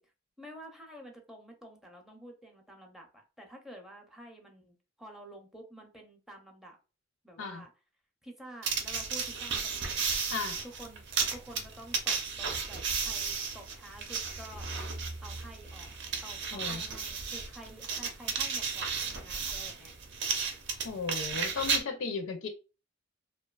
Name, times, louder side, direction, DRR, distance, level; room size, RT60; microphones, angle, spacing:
voice 1, 0.4-6.8 7.2-7.7 8.2-10.0 10.6-14.7 15.2-15.9 16.2-19.9, right 1 dB, ahead, 0.5 m, -50 dB
sound 1, 8.6-21.8, right 5 dB, 60° right, 0.5 m, -34 dB
voice 2, 16.5-16.8 20.8-22.5, left 5 dB, 80° left, 0.5 m, -35 dB
2.6 x 2.2 x 2.2 m
head